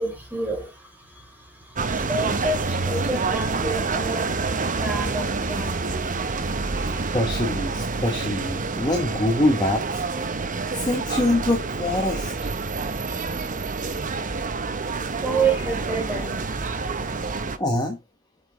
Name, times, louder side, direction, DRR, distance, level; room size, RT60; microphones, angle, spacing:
voice 1, 0.0-7.2 14.9-17.4, right 3 dB, 10° right, 4.0 m, -30 dB
sound 1, 1.8-17.6, right 4 dB, 35° right, 0.9 m, -27 dB
voice 2, 7.1-10.0 10.7-12.3 17.6-18.0, left 1 dB, 20° left, 1.2 m, -24 dB
7.8 x 6.2 x 4.5 m
head